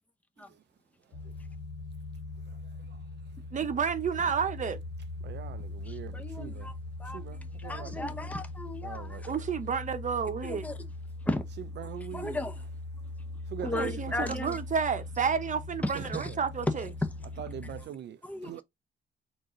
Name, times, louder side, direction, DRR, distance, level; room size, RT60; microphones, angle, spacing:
sound 1, 1.1-17.8, left 2 dB, 75° left, 1.3 m, -41 dB
voice 1, 3.5-4.8 9.3-10.7 13.6-16.9, right 6 dB, 40° right, 0.9 m, -30 dB
voice 2, 5.2-6.7 7.0-8.1 8.8-9.5 11.8-12.4 13.5-14.3 15.9-16.4 17.4-18.6, right 10 dB, 60° right, 0.5 m, -43 dB
voice 3, 5.9-6.7 7.0-9.4 10.4-10.8 11.3-11.4 12.1-12.6 13.6-14.6 15.8-15.9 16.2-16.3 18.2-18.6, left 1 dB, 5° left, 0.8 m, -35 dB
3.9 x 2.7 x 3.8 m
cardioid pair, 90°, 20 cm